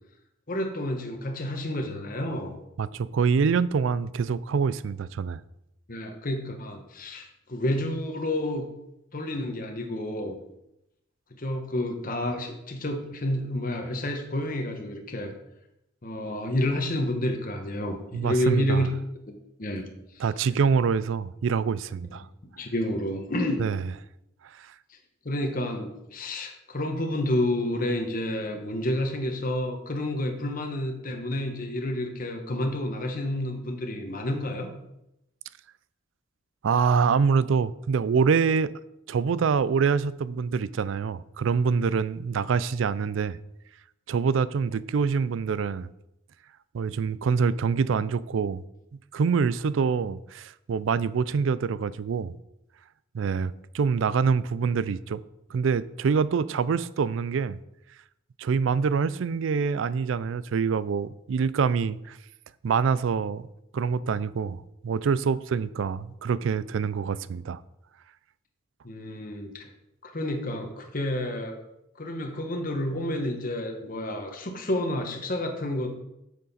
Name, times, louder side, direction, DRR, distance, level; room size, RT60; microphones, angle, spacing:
voice 1, 0.5-2.5 5.9-8.7 9.1-10.3 11.3-15.3 16.0-18.9 19.3-19.9 22.4-23.7 24.9-25.0 25.2-34.7 68.8-69.7 70.0-71.6 72.0-76.0, left 1 dB, 45° left, 1.1 m, -30 dB
voice 2, 2.8-5.4 18.1-18.9 20.2-22.3 23.6-23.8 24.6-24.7 36.6-38.7 39.1-43.4 44.1-45.9 46.7-48.6 49.1-52.3 53.1-55.2 55.5-57.6 58.4-62.2 62.6-63.4 63.7-67.6, right 5 dB, 70° right, 0.4 m, -25 dB
8.8 x 6.6 x 4.2 m
head